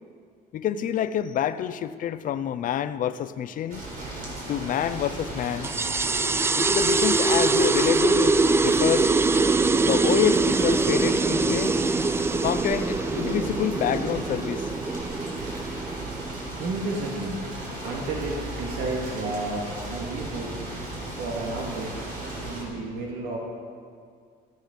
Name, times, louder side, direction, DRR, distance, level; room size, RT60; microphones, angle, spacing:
voice 1, 0.5-3.8 4.5-5.7 6.6-8.3 8.6-9.1 9.8-11.8 12.4-14.7, left 9 dB, 50° left, 12 dB, 0.5 m, -27 dB
sound 1, 3.7-22.6, right 2 dB, 60° right, 4.1 m, -36 dB
sound 2, 5.6-16.7, right 3 dB, 15° right, 0.3 m, -23 dB
voice 2, 16.6-17.4 17.8-20.6 21.1-22.1 22.4-23.4, right 2 dB, 85° right, -1 dB, 2.1 m, -32 dB
14.5 x 9.4 x 5.4 m, 2.1 s
cardioid pair, 110°, 17 cm